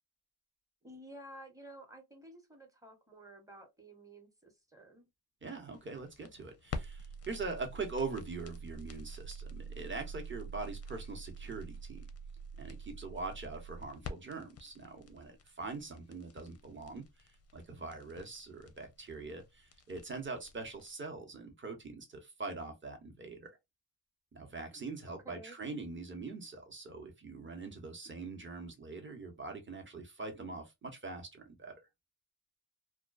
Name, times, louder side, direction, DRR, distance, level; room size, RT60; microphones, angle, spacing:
voice 1, 0.8-5.1 25.1-25.6, right 1 dB, 5° right, 1.0 m, -53 dB
voice 2, 5.4-12.0 12.6-23.5 24.3-31.7, right 3 dB, 25° right, 1.0 m, -43 dB
sound 1, 5.7-20.9, right 1 dB, 35° left, 0.5 m, -46 dB
2.3 x 2.2 x 2.4 m
cardioid pair, 60°, 46 cm